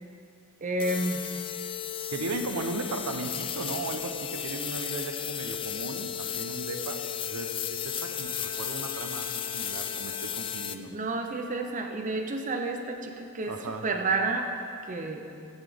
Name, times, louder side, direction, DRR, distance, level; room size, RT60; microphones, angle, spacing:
voice 1, 0.6-1.2 10.9-14.5 14.9-15.3, right 2 dB, 35° right, 4 dB, 0.6 m, -30 dB
sound 1, 0.8-10.8, left 9 dB, 25° left, 0.3 m, -34 dB
voice 2, 2.1-7.0 7.3-9.3 9.5-10.9 13.4-13.9, right 2 dB, 85° right, 5 dB, 0.8 m, -36 dB
15.0 x 8.1 x 3.5 m, 2.6 s
head